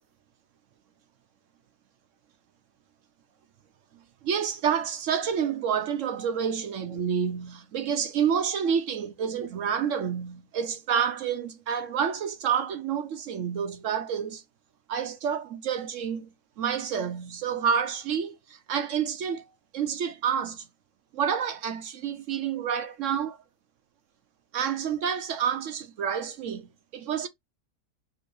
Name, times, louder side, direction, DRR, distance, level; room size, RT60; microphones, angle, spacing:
voice 1, 4.2-14.4 14.9-16.3 16.6-18.4 18.7-19.5 19.7-20.6 21.1-23.4 24.5-26.7 26.9-27.3, right 7 dB, 65° right, 0.9 m, -28 dB
4.6 x 2.5 x 4.6 m
omnidirectional pair, 1.6 m